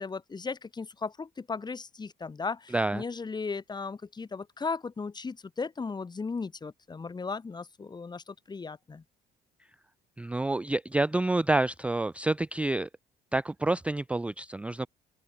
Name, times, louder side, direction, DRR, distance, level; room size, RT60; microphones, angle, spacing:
voice 1, 0.0-9.0, left 4 dB, 25° left, 4.5 m, -36 dB
voice 2, 2.7-3.0 10.2-12.9 13.3-14.9, right 2 dB, 5° right, 0.4 m, -28 dB
open air
cardioid pair, 110°, 17 cm